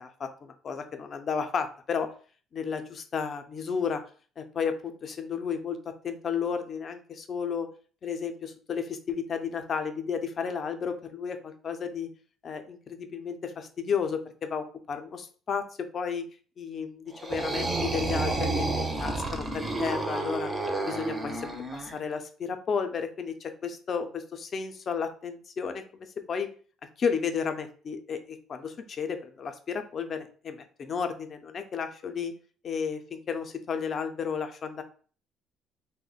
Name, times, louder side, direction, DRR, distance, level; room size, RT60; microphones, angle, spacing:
voice 1, 0.0-2.1 2.5-4.0 4.4-7.7 8.0-12.1 12.4-16.3 16.6-20.5 20.8-26.5 27.0-32.3 32.6-34.8, left 6 dB, 40° left, 7 dB, 0.4 m, -33 dB
sound 1, 17.1-21.9, right 2 dB, 15° right, 0.5 m, -30 dB
2.9 x 2.1 x 3.8 m, 0.41 s
cardioid pair, 145°, 0 cm